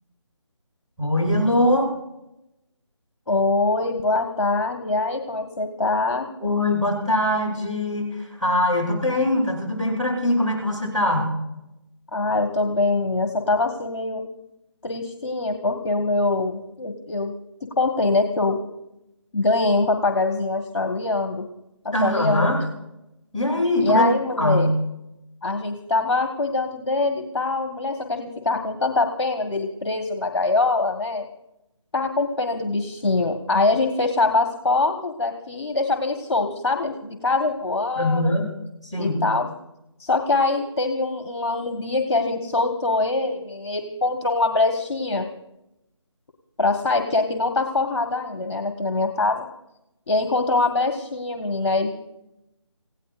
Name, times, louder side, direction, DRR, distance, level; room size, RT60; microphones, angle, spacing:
voice 1, 1.0-1.9 6.4-11.3 21.9-22.6 23.3-24.1 24.4-24.7 38.0-38.5 38.8-39.2, left 1 dB, ahead, -13 dB, 7.5 m, -22 dB
voice 2, 3.3-6.3 12.1-14.2 14.8-17.3 17.8-18.6 19.3-21.5 22.0-22.5 23.8-24.7 25.4-31.3 31.9-38.3 39.0-39.5 40.0-45.3 46.6-49.5 50.1-51.9, left 3 dB, 55° left, 5 dB, 1.7 m, -23 dB
28.0 x 16.5 x 2.6 m, 0.89 s
figure-of-eight pair, 155°, 16 cm